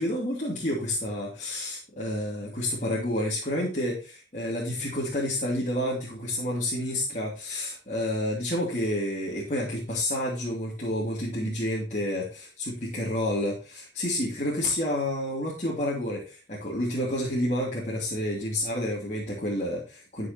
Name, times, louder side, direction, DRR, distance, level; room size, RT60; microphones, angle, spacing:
voice 1, 0.0-20.3, left 1 dB, 40° left, -4 dB, 2.8 m, -29 dB
12.0 x 6.7 x 2.9 m, 0.34 s
head